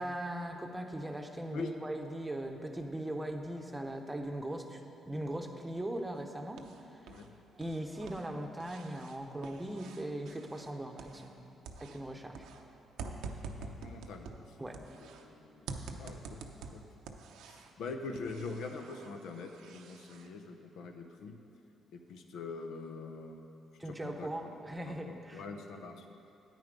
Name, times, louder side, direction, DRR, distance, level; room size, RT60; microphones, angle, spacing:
voice 1, 0.0-4.8 5.1-7.0 7.6-12.5 14.6-14.8 23.8-25.4, right 1 dB, 15° right, 4 dB, 0.8 m, -39 dB
sound 1, 6.1-7.3 7.5-11.4 11.6-15.3 15.7-17.8 18.2-20.3, right 4 dB, 85° right, 0.7 m, -47 dB
voice 2, 13.6-15.7 16.0-16.4 16.7-16.8 17.4-21.4 21.9-23.5 23.8-26.0, left 4 dB, 80° left, 5 dB, 0.8 m, -44 dB
9.4 x 9.2 x 5.3 m, 2.7 s
cardioid pair, 90°, 0 cm